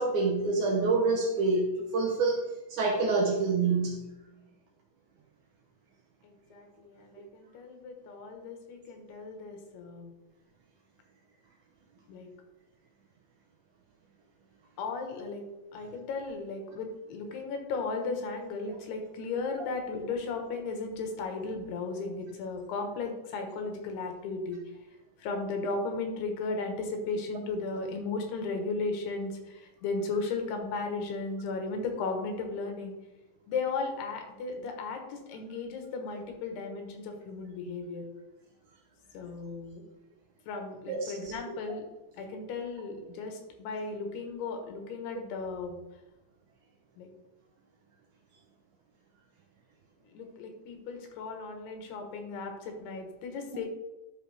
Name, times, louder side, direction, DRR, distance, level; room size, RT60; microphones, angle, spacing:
voice 1, 0.0-2.4 2.7-4.1 17.2-17.3 18.6-18.7 40.9-41.3, right 3 dB, 85° right, 1 dB, 1.7 m, -27 dB
voice 2, 6.2-10.1 12.1-12.3 14.8-15.4 15.7-24.6 25.2-32.9 33.5-38.0 39.1-39.8 40.5-41.8 42.2-45.8 47.0-47.1 50.1-53.7, left 3 dB, 80° left, 4 dB, 3.3 m, -35 dB
11.5 x 6.2 x 3.4 m, 1.0 s
omnidirectional pair, 4.6 m